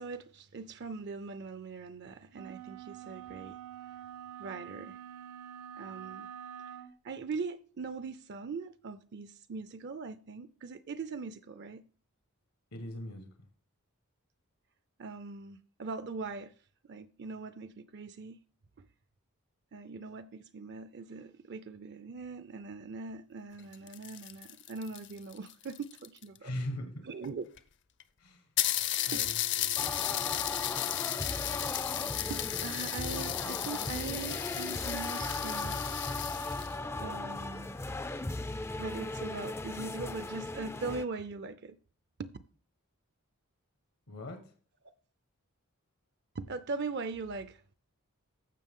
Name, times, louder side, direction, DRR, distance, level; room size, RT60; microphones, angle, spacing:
voice 1, 0.0-3.6 4.4-5.0 5.8-6.3 7.0-11.8 15.0-16.5 16.8-18.4 18.8-18.9 19.7-26.5 27.0-27.4 29.1-29.3 32.3-35.8 37.0-37.8 38.8-41.8 42.2-42.3 46.3-47.7, right 4 dB, 50° right, 0.5 m, -41 dB
sound 1, 2.3-6.9, right 9 dB, 85° right, 0.8 m, -46 dB
voice 2, 12.7-13.3 26.4-27.0 28.2-28.5 28.8-30.2 44.1-44.5, left 1 dB, 80° left, 1.5 m, -41 dB
sound 2, 23.6-26.4 27.2-27.3 27.6-27.7 28.0-28.1 28.6-36.7, left 13 dB, 55° left, 0.6 m, -34 dB
sound 3, 29.8-41.0, left 2 dB, 10° left, 0.3 m, -37 dB
15.0 x 5.9 x 3.7 m
head